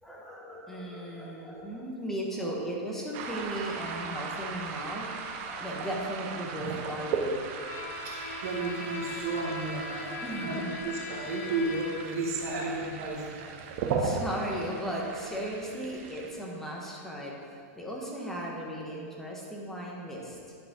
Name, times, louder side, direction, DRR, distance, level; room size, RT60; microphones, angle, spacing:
voice 1, 0.0-7.5 9.0-9.1 10.2-10.9 12.5-12.6 14.0-20.6, right 1 dB, 5° left, -3 dB, 1.2 m, -36 dB
sound 1, 3.1-16.3, right 5 dB, 45° right, 0.8 m, -37 dB
Bowed string instrument, 7.6-12.2, left 3 dB, 75° left, 1.4 m, -40 dB
voice 2, 8.0-13.4, right 3 dB, 65° right, -7 dB, 1.6 m, -33 dB
11.0 x 5.0 x 3.7 m, 2.3 s
supercardioid pair, 150°, 9 cm